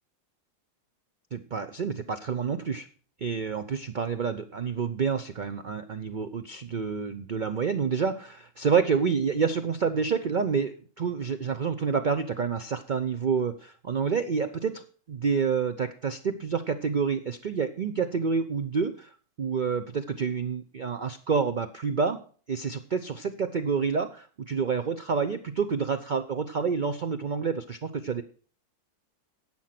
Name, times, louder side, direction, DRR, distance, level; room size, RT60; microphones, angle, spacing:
voice 1, 1.3-2.9 3.2-19.1 19.4-22.2 22.5-28.2, right 6 dB, 65° right, 9 dB, 0.4 m, -28 dB
11.5 x 7.8 x 5.8 m, 0.42 s
omnidirectional pair, 1.7 m